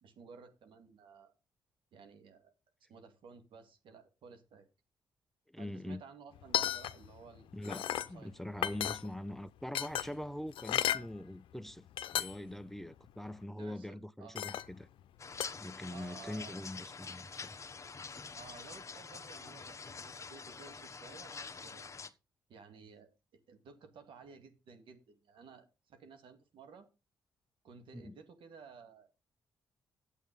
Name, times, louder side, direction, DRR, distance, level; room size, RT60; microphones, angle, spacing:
voice 1, 0.0-1.3 1.9-2.5 2.9-4.7 5.6-7.5 7.9-8.3 13.6-14.4 15.9-16.6 18.4-21.9 22.5-23.1 23.5-26.9 27.6-29.1, right 5 dB, 75° right, 2.2 m, -55 dB
voice 2, 5.5-6.0 7.5-11.9 12.1-14.9 15.6-17.6 27.9-28.2, left 1 dB, 5° left, 0.5 m, -43 dB
sound 1, 6.4-7.2 7.5-8.1 8.6-9.3 9.7-11.1 11.7-11.8 12.0-12.5 12.9-13.1 14.4-14.8 15.4-15.5, left 12 dB, 80° left, 0.6 m, -34 dB
sound 2, 15.2-22.1, left 5 dB, 35° left, 1.1 m, -46 dB
9.1 x 8.2 x 5.2 m
cardioid pair, 65°, 9 cm